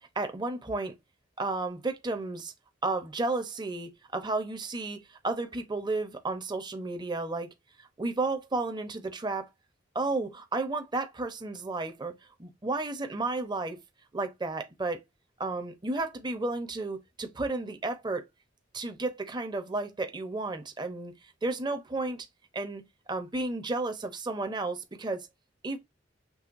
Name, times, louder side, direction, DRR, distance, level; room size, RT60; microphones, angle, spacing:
voice 1, 0.2-0.9 1.4-2.5 2.8-5.0 5.2-7.5 8.0-9.5 9.9-12.1 12.4-13.8 14.1-15.0 15.4-18.2 18.7-21.1 21.4-22.3 22.5-22.8 23.1-25.3 25.6-25.8, right 3 dB, 25° right, 0.8 m, -32 dB
6.3 x 3.3 x 2.5 m
head